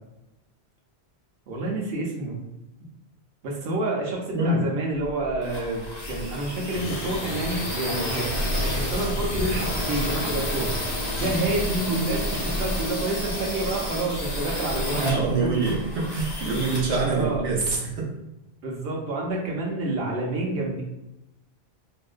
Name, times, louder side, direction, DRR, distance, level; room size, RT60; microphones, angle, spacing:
voice 1, 1.5-2.4 3.4-10.9 11.2-15.7 17.1-17.4 18.6-20.8, right 2 dB, 65° right, -1 dB, 0.8 m, -28 dB
sound 1, 5.0-17.8, left 1 dB, 45° left, 0.3 m, -31 dB
sound 2, 6.7-12.8, left 2 dB, 75° left, 0.8 m, -35 dB
voice 2, 15.0-18.0, right 3 dB, 85° right, -2 dB, 1.0 m, -25 dB
2.5 x 2.1 x 2.3 m, 0.96 s
omnidirectional pair, 1.1 m